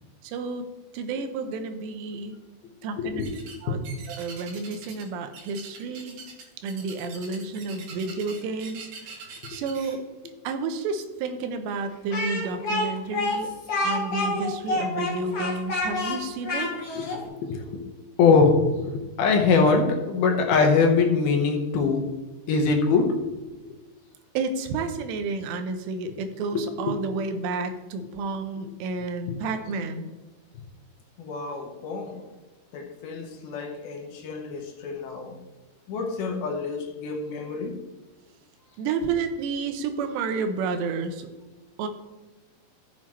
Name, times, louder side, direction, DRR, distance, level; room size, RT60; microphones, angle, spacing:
voice 1, 0.2-0.6 0.9-2.4 2.8-3.2 3.6-3.8 4.1-6.2 6.6-8.9 9.5-10.0 10.4-13.5 13.8-16.7 24.3-30.1 38.8-41.3 41.8-41.9, right 4 dB, 90° right, 7 dB, 3.0 m, -30 dB
voice 2, 3.0-3.3 3.7-3.8 16.6-17.8 18.2-22.0 22.5-23.2 26.5-26.9 29.3-29.4 31.2-32.2 32.7-35.4 35.9-37.8, left 4 dB, 70° left, 3 dB, 2.7 m, -24 dB
sound 1, 3.2-3.6 3.8-5.1 5.3-9.9, right 5 dB, 65° right, 3.0 m, -43 dB
Speech, 12.1-17.2, left 2 dB, 40° left, 2.8 m, -28 dB
13.0 x 7.3 x 3.1 m, 1.2 s
omnidirectional pair, 4.9 m